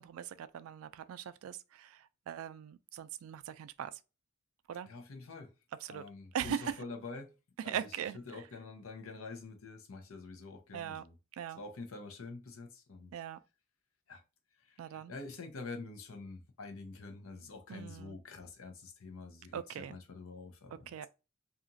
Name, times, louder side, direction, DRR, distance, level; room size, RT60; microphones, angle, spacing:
voice 1, 0.0-3.9 4.7-4.9 5.8-6.0 6.3-6.8 7.7-8.4 10.7-11.0 11.4-11.6 13.1-13.4 14.8-15.1 17.7-18.2 19.5-20.0 20.9-21.1, right 8 dB, 80° right, 0.3 m, -40 dB
voice 2, 4.8-5.5 5.9-7.3 7.6-7.9 8.3-11.2 11.5-13.1 14.1-14.2 14.6-21.1, left 3 dB, 85° left, 0.7 m, -47 dB
2.8 x 2.4 x 2.6 m
head